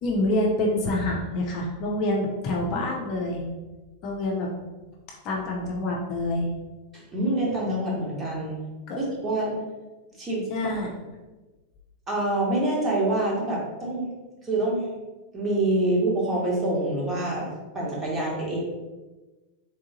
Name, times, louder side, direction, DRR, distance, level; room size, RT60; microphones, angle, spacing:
voice 1, 0.0-3.4 4.0-4.5 5.2-6.5 8.9-9.0 10.5-10.9, left 1 dB, 40° left, -1 dB, 0.7 m, -26 dB
voice 2, 6.9-8.6 9.0-9.5 10.1-10.4 12.1-14.1 14.4-14.8 15.3-17.5 17.7-18.6, right 1 dB, 20° right, -5 dB, 1.4 m, -26 dB
3.7 x 3.6 x 2.8 m, 1.2 s
figure-of-eight pair, 90°, 0 cm